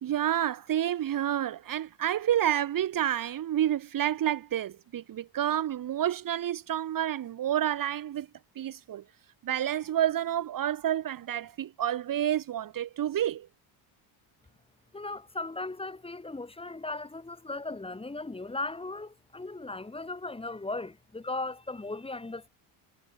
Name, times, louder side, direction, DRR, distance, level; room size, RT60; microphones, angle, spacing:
voice 1, 0.0-8.3 8.6-9.0 9.4-13.5, right 11 dB, 45° right, 2.3 m, -29 dB
voice 2, 14.9-22.5, left 2 dB, 10° left, 6.9 m, -37 dB
cardioid pair, 130°, 47 cm